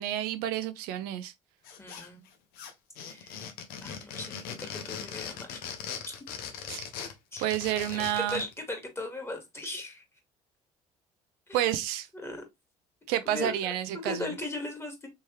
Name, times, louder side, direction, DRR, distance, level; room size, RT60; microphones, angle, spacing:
voice 1, 0.0-1.3 6.7-6.9 7.4-8.4 11.5-12.1 13.1-14.3, right 12 dB, 80° right, 0.5 m, -30 dB
sound 1, 1.6-2.3 2.5-8.5, left 7 dB, 80° left, 0.8 m, -40 dB
voice 2, 1.8-2.2 3.0-3.4 3.8-5.6 6.1-6.2 7.3-7.4 7.9-10.0 11.5-11.6 12.2-12.4 13.3-13.5 13.9-15.1, left 2 dB, 15° left, 1.8 m, -38 dB
3.4 x 3.1 x 2.9 m
supercardioid pair, 70°, 16 cm